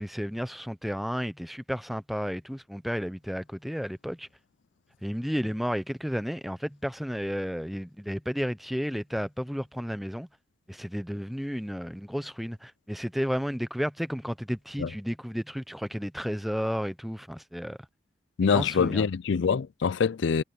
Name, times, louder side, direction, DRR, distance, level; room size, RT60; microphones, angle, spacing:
voice 1, 0.0-4.3 5.0-10.3 10.7-17.8 18.5-19.1, equal, ahead, 0.6 m, -32 dB
voice 2, 18.4-20.4, left 6 dB, 75° left, 0.4 m, -25 dB
head